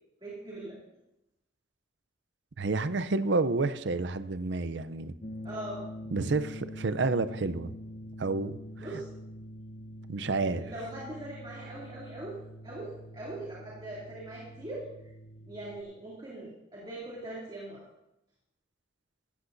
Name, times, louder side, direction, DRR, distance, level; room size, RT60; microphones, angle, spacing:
voice 1, 0.2-0.8 5.4-5.8 8.8-9.1 10.5-12.4 12.6-14.8 15.4-17.8, right 1 dB, 25° right, -6 dB, 2.7 m, -41 dB
voice 2, 2.6-5.1 6.1-7.7 8.2-8.6 10.1-10.6, right 3 dB, 65° right, 13 dB, 0.6 m, -29 dB
sound 1, 5.2-15.8, equal, 40° left, 1.0 m, -45 dB
16.0 x 14.0 x 2.7 m, 0.90 s
head